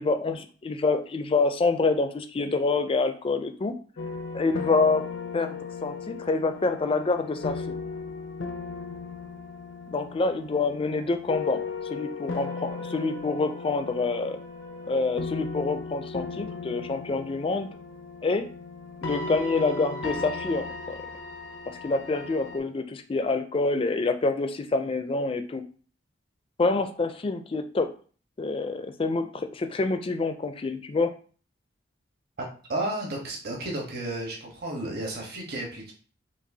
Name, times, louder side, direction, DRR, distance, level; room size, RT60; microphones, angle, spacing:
voice 1, 0.0-3.7 4.3-5.0 5.3-5.5 5.8-7.7 9.9-11.6 11.9-14.4 14.9-17.7 18.2-18.5 19.0-21.0 21.7-25.6 26.6-27.9 28.4-31.1, left 3 dB, 30° left, 8 dB, 0.4 m, -27 dB
sound 1, 4.0-22.6, left 4 dB, 75° left, 0.6 m, -36 dB
voice 2, 32.7-35.9, right 1 dB, 55° right, -1 dB, 1.2 m, -32 dB
5.3 x 2.4 x 2.7 m, 0.41 s
head